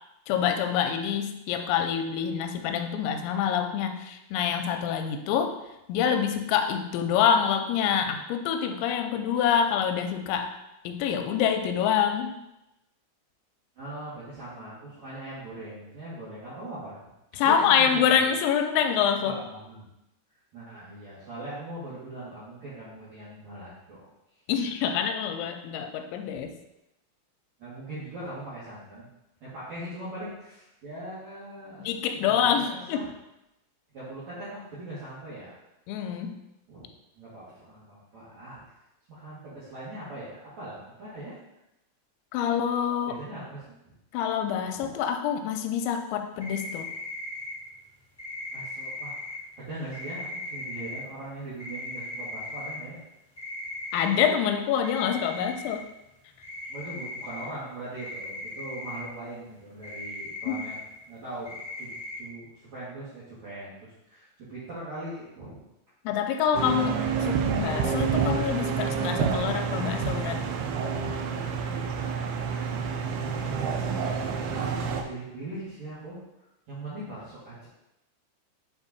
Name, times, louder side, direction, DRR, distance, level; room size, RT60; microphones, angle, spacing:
voice 1, 0.3-5.6 5.9-10.5 10.8-12.3 17.3-19.4 24.5-26.5 31.8-33.0 35.9-36.4 42.3-43.2 44.1-46.9 53.9-55.8 60.5-60.6 66.1-70.4, left 8 dB, 90° left, 6 dB, 2.9 m, -26 dB
voice 2, 13.8-17.0 17.4-18.3 19.2-19.9 20.5-24.1 26.3-26.4 27.6-29.1 29.4-31.9 32.2-33.1 33.9-35.5 36.7-36.9 37.2-38.6 39.1-41.4 43.1-43.6 44.7-44.9 48.5-49.2 49.6-53.0 56.7-60.8 61.1-61.9 62.2-65.6 73.2-76.2 76.7-77.7, right 1 dB, 50° right, -10 dB, 2.4 m, -40 dB
sound 1, 46.4-47.5 48.2-49.3 49.9-51.0 51.6-52.8 53.4-54.3 54.8-55.8 56.0-56.1 56.4-57.4 58.0-59.0 59.8-60.8 61.4-62.2, left 2 dB, 5° left, 1.2 m, -38 dB
sound 2, 66.5-75.0, right 6 dB, 85° right, 2.3 m, -28 dB
7.4 x 4.4 x 4.1 m, 0.90 s
omnidirectional pair, 5.2 m